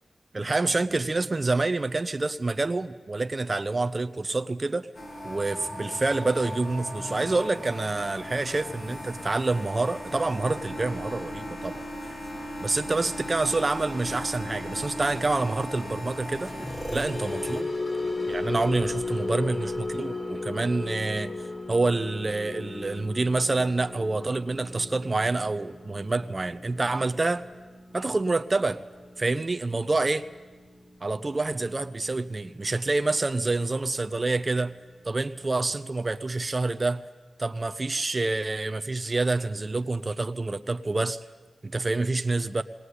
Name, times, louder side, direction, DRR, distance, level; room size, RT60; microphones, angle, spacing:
voice 1, 0.3-4.9 5.2-12.1 12.6-16.5 16.9-17.7 18.3-21.3 21.7-27.4 27.9-28.8 29.2-30.2 31.0-34.7 35.0-37.1 37.4-41.2 41.6-42.6, right 3 dB, 35° right, 10 dB, 0.7 m, -27 dB
sound 1, 4.9-17.6, equal, 55° left, 2.9 m, -37 dB
sound 2, 7.1-10.9 11.6-12.3 13.4-13.5 14.2-14.4 15.6-15.7 15.8-20.3 22.2-22.9, right 1 dB, 5° right, 1.4 m, -46 dB
sound 3, 16.3-32.7 33.0-33.3 33.7-33.9, left 3 dB, 30° left, 3.0 m, -36 dB
19.5 x 19.0 x 9.7 m, 1.3 s
wide cardioid pair, 80°, 0 cm